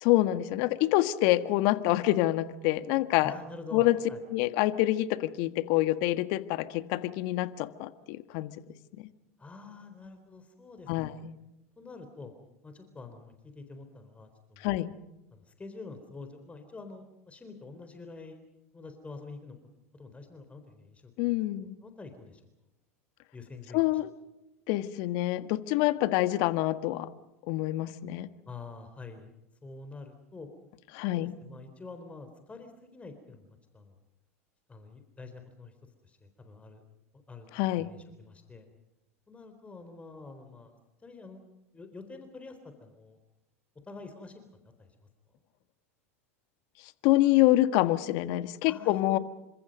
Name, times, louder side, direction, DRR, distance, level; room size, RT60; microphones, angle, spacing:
voice 1, 0.0-3.3 3.7-4.0 4.3-8.5 9.0-9.1 10.9-11.3 14.6-14.9 21.2-21.8 23.7-24.1 24.7-27.1 27.5-28.3 30.9-31.3 37.5-37.9 47.0-49.2, left 16 dB, 55° left, 12 dB, 1.6 m, -26 dB
voice 2, 3.2-4.2 9.4-11.2 11.8-12.3 12.6-14.7 15.3-18.4 18.7-19.6 19.9-21.1 21.8-22.4 23.3-23.8 28.5-29.3 29.6-30.5 31.1-34.0 34.7-35.7 36.0-36.8 37.3-37.5 37.8-38.7 39.3-40.8 41.0-41.4 41.7-43.2 43.8-44.4 44.8-45.1 48.6-49.2, left 3 dB, 15° left, 7 dB, 3.9 m, -47 dB
29.5 x 25.5 x 5.4 m, 0.93 s
hypercardioid pair, 85°, 8 cm